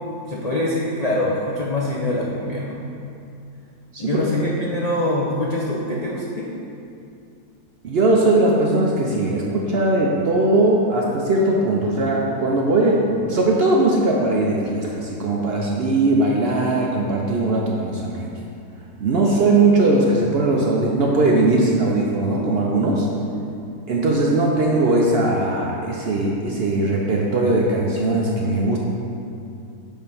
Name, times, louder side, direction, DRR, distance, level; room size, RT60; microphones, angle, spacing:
voice 1, 0.3-2.8 4.0-6.5, left 1 dB, 65° left, -4 dB, 0.4 m, -24 dB
voice 2, 7.8-18.3 19.0-23.1 23.9-28.8, right 2 dB, 60° right, -2 dB, 0.6 m, -19 dB
7.0 x 3.2 x 5.3 m, 2.5 s
omnidirectional pair, 1.6 m